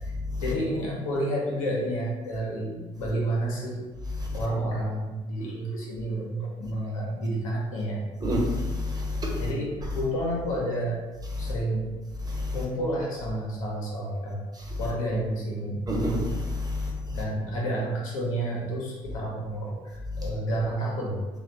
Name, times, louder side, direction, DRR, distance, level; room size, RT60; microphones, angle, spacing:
voice 1, 0.4-3.8 4.3-8.0 9.4-11.0 11.4-11.9 12.5-14.4 14.8-15.7 17.1-21.2, right 1 dB, 90° left, -4 dB, 0.8 m, -30 dB
voice 2, 8.2-9.4 11.4-11.5 12.3-12.6 15.9-16.9 20.2-20.3, left 1 dB, 25° right, -1 dB, 1.1 m, -28 dB
3.2 x 2.4 x 4.3 m, 1.2 s
hypercardioid pair, 55°, 17 cm